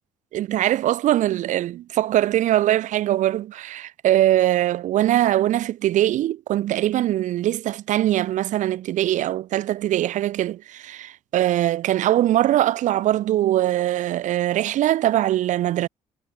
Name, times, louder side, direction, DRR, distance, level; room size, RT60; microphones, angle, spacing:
voice 1, 0.3-15.9, right 13 dB, 50° right, 0.4 m, -22 dB
figure-of-eight pair, 50°, 17 cm